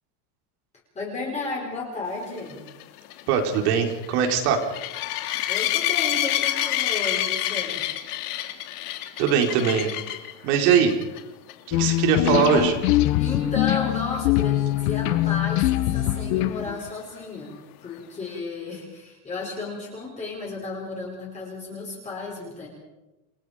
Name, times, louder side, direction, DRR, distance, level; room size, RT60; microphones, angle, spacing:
voice 1, 0.9-2.6 5.5-7.9 13.2-22.7, left 3 dB, 15° left, -3 dB, 5.1 m, -33 dB
sound 1, 2.4-10.3 10.9-11.2 11.5-11.6 12.0-12.1 15.7-15.8, left 13 dB, 80° left, 2.9 m, -27 dB
voice 2, 3.3-4.6 9.2-9.9 10.4-11.0 11.7-12.8, right 7 dB, 70° right, 3 dB, 4.8 m, -21 dB
sound 2, 11.7-16.9, left 15 dB, 60° left, 1.4 m, -23 dB
29.0 x 22.5 x 5.2 m, 1.0 s
cardioid pair, 180°, 46 cm